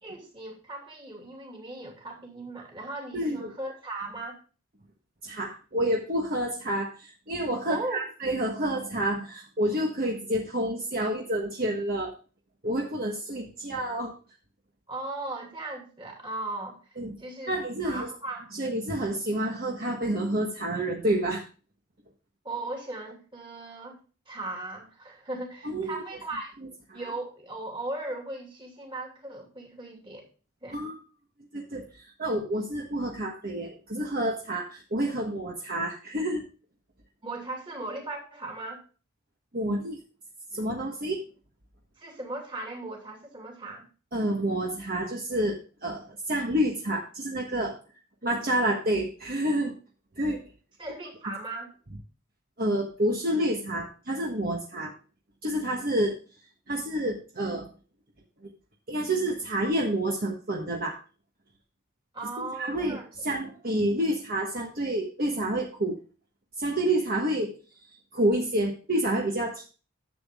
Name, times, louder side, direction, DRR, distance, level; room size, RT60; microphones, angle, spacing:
voice 1, 0.0-4.4 7.7-8.0 14.9-16.8 17.2-18.5 22.4-24.0 24.3-26.5 26.9-30.3 30.6-30.8 37.2-38.8 42.0-43.8 50.8-51.8 62.1-63.0, right 2 dB, 25° right, 1 dB, 2.8 m, -37 dB
voice 2, 3.1-3.5 5.2-12.1 12.6-14.1 17.0-17.1 17.5-18.1 18.6-21.4 25.6-26.0 26.9-27.0 30.7-31.0 31.5-36.5 39.5-40.0 40.5-41.2 44.1-47.7 48.2-49.7 50.2-50.4 52.6-54.9 55.4-56.2 56.7-57.7 58.9-61.0 62.6-66.0 66.6-67.5 68.1-69.6, right 1 dB, 45° right, -1 dB, 1.4 m, -29 dB
11.0 x 7.5 x 3.7 m, 0.36 s
head